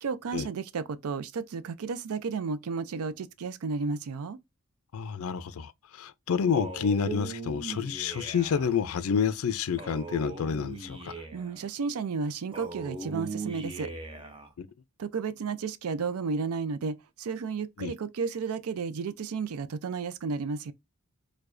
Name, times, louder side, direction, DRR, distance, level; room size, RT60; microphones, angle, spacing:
voice 1, 0.0-4.4 11.3-13.9 15.0-20.7, right 5 dB, 85° right, 0.4 m, -33 dB
voice 2, 4.9-11.1 14.6-14.7 17.8-17.9, left 6 dB, 80° left, 0.4 m, -29 dB
Male speech man speaking, 6.5-8.7 9.8-11.6 12.5-14.5, right 3 dB, 20° right, 0.5 m, -39 dB
4.7 x 2.2 x 2.4 m
head